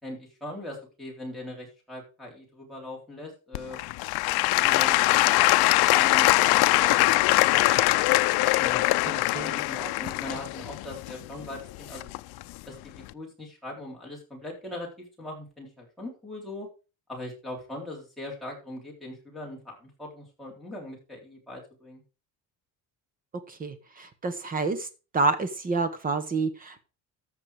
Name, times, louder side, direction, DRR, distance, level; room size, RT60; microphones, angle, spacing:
voice 1, 0.0-3.9 4.6-5.0 5.2-7.3 8.6-12.1 12.7-16.7 17.1-22.0, left 1 dB, ahead, -4 dB, 3.7 m, -40 dB
Applause / Crowd, 3.5-12.4 13.0-13.1, left 20 dB, 80° left, 0.6 m, -22 dB
voice 2, 23.5-24.9 25.1-26.9, right 3 dB, 20° right, 11 dB, 1.1 m, -28 dB
14.0 x 5.9 x 4.9 m, 0.32 s
cardioid pair, 180°, 38 cm